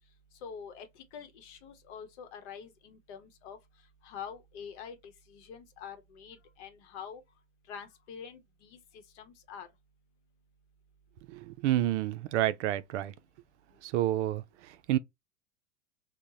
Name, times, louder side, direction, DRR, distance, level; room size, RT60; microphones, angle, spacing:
voice 1, 0.4-3.6 4.0-5.0 5.3-7.2 7.7-8.8 9.2-9.7, left 7 dB, 60° left, 0.9 m, -45 dB
voice 2, 11.3-13.1 13.8-15.0, right 13 dB, 60° right, 0.5 m, -29 dB
3.5 x 2.2 x 2.7 m
hypercardioid pair, 90°, 39 cm